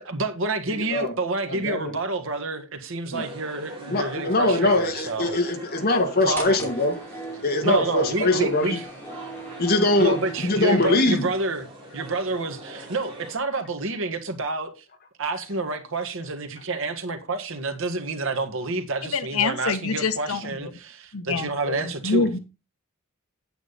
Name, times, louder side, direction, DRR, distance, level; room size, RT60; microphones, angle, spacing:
voice 1, 0.0-5.4 6.2-6.6 7.6-8.8 10.0-11.7 11.9-14.7 15.2-22.3, right 2 dB, 65° right, 1.7 m, -28 dB
voice 2, 0.7-1.1 1.5-1.9 3.1-3.3 3.9-7.0 7.4-8.8 9.6-11.3 20.4-20.5, left 2 dB, 50° left, 2.0 m, -22 dB
sound 1, 3.1-13.4, right 1 dB, 25° right, 4.9 m, -42 dB
sound 2, 6.3-11.0, right 1 dB, 10° left, 2.7 m, -39 dB
voice 3, 19.1-20.7 21.1-22.4, left 4 dB, 85° left, 1.0 m, -26 dB
9.0 x 8.3 x 4.1 m
head